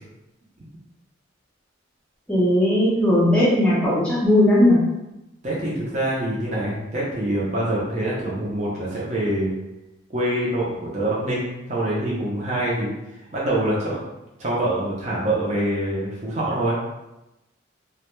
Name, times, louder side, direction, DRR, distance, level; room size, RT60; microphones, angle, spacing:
voice 1, 2.3-4.8, left 1 dB, 5° left, -8 dB, 0.6 m, -17 dB
voice 2, 5.4-9.5 10.1-14.0 14.4-16.7, right 1 dB, 35° right, -6 dB, 0.6 m, -25 dB
2.3 x 2.2 x 2.9 m, 0.94 s
head